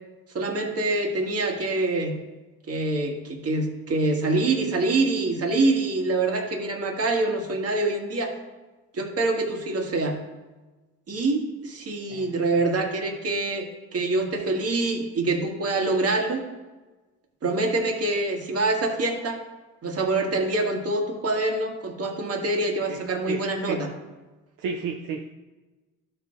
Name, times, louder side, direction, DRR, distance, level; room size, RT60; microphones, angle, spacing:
voice 1, 0.3-2.2 2.7-8.4 8.9-10.2 11.1-13.6 13.9-16.4 17.4-19.4 19.8-23.9, right 2 dB, 45° right, 2 dB, 1.7 m, -25 dB
voice 2, 23.3-23.8 24.6-25.3, right 5 dB, 75° right, 3 dB, 0.7 m, -33 dB
12.0 x 4.5 x 3.8 m, 1.2 s
supercardioid pair, 75°, 33 cm